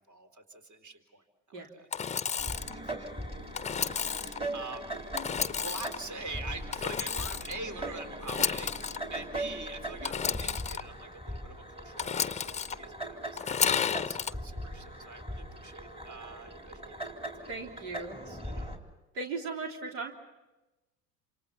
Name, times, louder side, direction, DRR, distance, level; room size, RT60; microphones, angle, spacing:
voice 1, 0.0-1.9 2.3-3.0 3.7-5.0 5.6-17.8 18.1-18.7, right 3 dB, 35° right, 7 dB, 4.0 m, -45 dB
Engine / Sawing, 1.9-2.7 3.5-4.4 5.2-6.0 6.7-7.6 8.2-9.0 10.0-10.8 12.0-12.8 13.4-14.3, left 7 dB, 15° left, 0.8 m, -31 dB
sound 1, 2.4-18.8, right 1 dB, 10° right, 3.8 m, -40 dB
voice 2, 17.5-18.2 19.1-20.1, right 3 dB, 75° right, 2 dB, 3.5 m, -37 dB
28.5 x 27.5 x 5.7 m, 1.1 s
hypercardioid pair, 85°, 46 cm